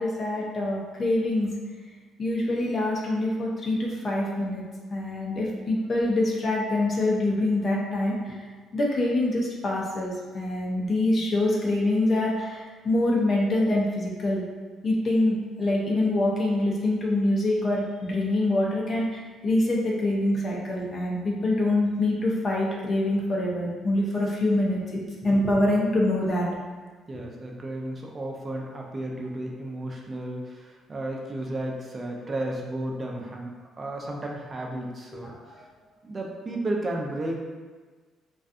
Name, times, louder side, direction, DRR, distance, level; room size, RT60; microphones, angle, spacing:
voice 1, 0.0-1.5 2.2-4.6 4.9-8.4 8.7-14.4 14.8-26.5 35.2-35.6, left 1 dB, 35° left, -3 dB, 0.5 m, -25 dB
voice 2, 27.1-35.3 36.0-37.4, right 1 dB, 25° right, 0 dB, 0.4 m, -33 dB
2.5 x 2.2 x 2.4 m, 1.4 s
cardioid pair, 125°, 0 cm